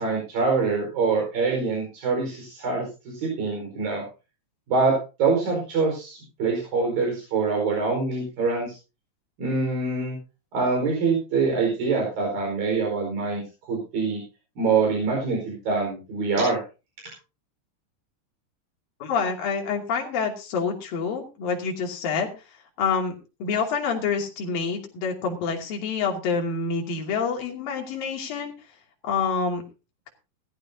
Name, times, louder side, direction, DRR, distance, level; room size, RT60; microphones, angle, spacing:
voice 1, 0.0-4.0 4.7-8.7 9.4-10.2 10.5-13.4 13.7-14.2 14.6-16.6, right 4 dB, 80° right, 0 dB, 6.4 m, -25 dB
voice 2, 19.0-22.3 22.8-28.5 29.0-29.6, left 5 dB, 80° left, 0 dB, 4.5 m, -27 dB
18.5 x 14.0 x 2.8 m, 0.31 s
omnidirectional pair, 4.0 m